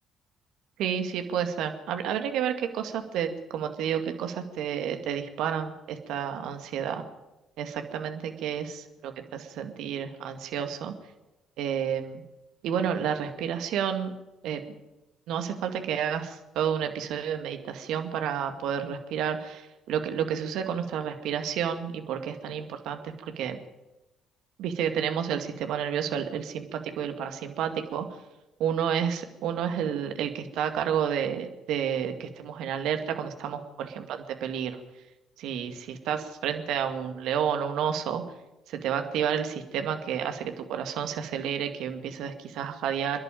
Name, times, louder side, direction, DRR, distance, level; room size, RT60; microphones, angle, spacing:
voice 1, 0.8-7.0 7.6-11.0 11.6-12.2 12.6-14.1 14.4-14.6 15.3-23.6 24.6-28.0 28.6-34.8 35.4-38.2 38.7-43.2, right 8 dB, 70° right, 6 dB, 2.1 m, -30 dB
27.5 x 11.0 x 8.9 m, 1.0 s
hypercardioid pair, 50°, 0 cm